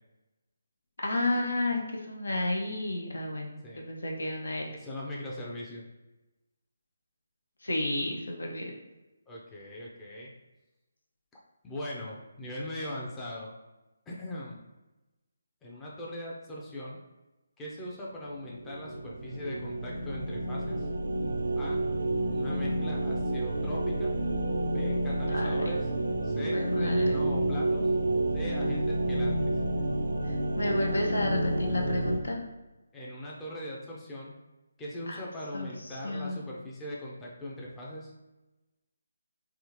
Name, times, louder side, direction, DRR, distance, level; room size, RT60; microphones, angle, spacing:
voice 1, 1.0-4.7 7.6-8.7 25.3-25.7 26.5-27.2 30.2-32.4 35.1-35.2 35.5-35.7 36.0-36.4, left 1 dB, 75° left, 0 dB, 0.7 m, -32 dB
voice 2, 4.7-5.8 9.3-10.3 11.6-13.6 14.1-14.6 15.6-17.0 17.6-20.9 21.6-21.8 22.3-24.1 24.7-25.9 26.2-27.9 28.3-29.4 32.9-34.4 34.8-38.1, left 1 dB, 10° left, -5 dB, 0.5 m, -40 dB
sound 1, 18.4-32.2, right 1 dB, 75° right, 0.5 m, -29 dB
3.4 x 2.4 x 3.0 m, 1.1 s
figure-of-eight pair, 150°, 0 cm